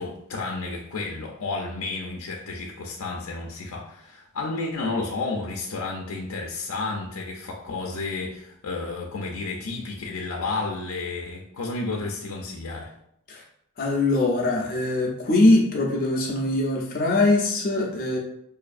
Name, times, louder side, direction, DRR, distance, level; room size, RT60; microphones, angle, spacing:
voice 1, 0.0-12.9, left 3 dB, 85° left, 0 dB, 0.5 m, -31 dB
voice 2, 13.8-18.2, left 2 dB, 40° left, -2 dB, 0.6 m, -22 dB
4.9 x 2.6 x 2.4 m, 0.76 s
head